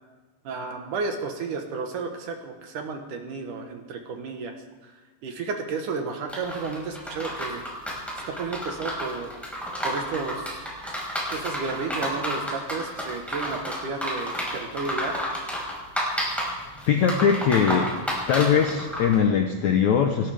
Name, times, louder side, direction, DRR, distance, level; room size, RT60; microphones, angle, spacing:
voice 1, 0.4-4.6 4.8-4.9 5.2-7.6 8.3-9.3 9.8-10.5 11.3-15.2, right 4 dB, 65° right, 4 dB, 2.5 m, -32 dB
sound 1, 6.3-19.1, equal, ahead, 5.0 m, -31 dB
voice 2, 16.9-17.9 18.3-20.3, left 7 dB, 80° left, 4 dB, 1.7 m, -21 dB
28.0 x 13.0 x 3.5 m, 1.3 s
omnidirectional pair, 4.5 m